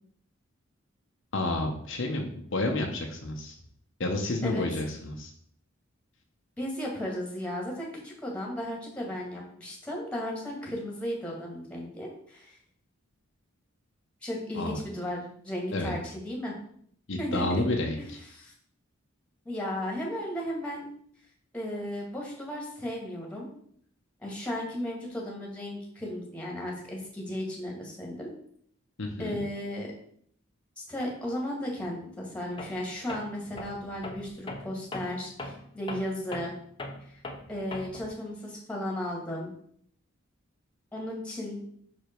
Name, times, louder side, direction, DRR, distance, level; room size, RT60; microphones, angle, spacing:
voice 1, 1.3-3.5 4.0-5.3 14.5-14.8 15.7-15.9 17.1-18.2 29.0-29.4, left 2 dB, 60° left, 2 dB, 0.9 m, -30 dB
voice 2, 6.6-12.6 14.2-16.5 17.2-17.4 18.0-18.1 18.3-18.5 19.5-20.9 21.5-23.5 24.2-28.3 29.2-29.9 30.9-36.6 37.1-37.2 37.5-39.5 40.9-41.7, left 1 dB, 5° left, -2 dB, 1.9 m, -35 dB
Tools, 32.6-32.8 33.1-38.1, left 2 dB, 25° left, 0.8 m, -40 dB
5.9 x 5.0 x 4.5 m, 0.63 s
head